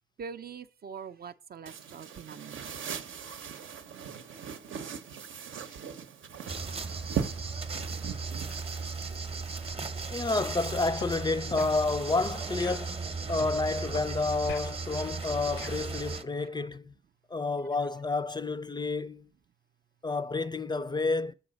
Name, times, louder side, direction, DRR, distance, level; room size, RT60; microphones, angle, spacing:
voice 1, 0.2-2.7 6.8-6.9 15.0-15.2, right 6 dB, 50° right, 0.5 m, -43 dB
sound 1, 1.7-9.7, right 7 dB, 85° right, 0.8 m, -40 dB
sound 2, 6.5-16.2, right 4 dB, 30° right, 0.8 m, -36 dB
voice 2, 10.1-16.9 17.3-19.3 20.0-21.3, left 3 dB, 20° left, 0.4 m, -30 dB
sound 3, 10.3-10.5 11.0-11.1 11.6-11.8 12.2-12.3 12.6-13.5 13.9-14.1 14.5-15.9, left 7 dB, 75° left, 0.6 m, -43 dB
7.0 x 4.8 x 6.2 m
cardioid pair, 80°, 20 cm